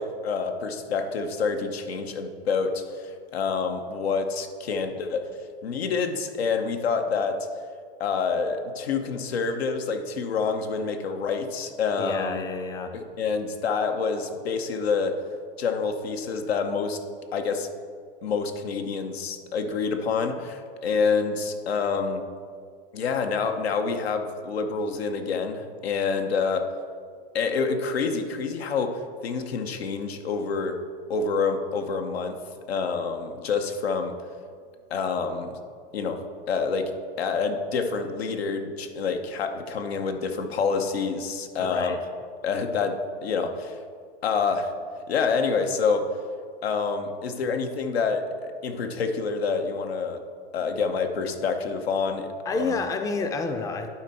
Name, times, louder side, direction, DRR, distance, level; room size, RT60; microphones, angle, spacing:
voice 1, 0.0-5.3 5.6-7.5 8.0-12.4 12.9-15.2 15.6-17.0 17.3-17.7 18.2-22.3 22.9-26.7 27.3-30.8 31.1-32.4 32.7-34.2 34.9-35.6 35.9-36.9 37.2-41.9 42.4-43.8 44.2-44.8 45.1-46.2 46.6-50.2 50.5-52.7, left 5 dB, 85° left, 6 dB, 0.8 m, -27 dB
voice 2, 12.0-13.0 41.6-42.0 52.4-53.9, left 3 dB, 10° left, 7 dB, 0.4 m, -29 dB
11.0 x 4.4 x 4.1 m, 2.1 s
hypercardioid pair, 110°, 30 cm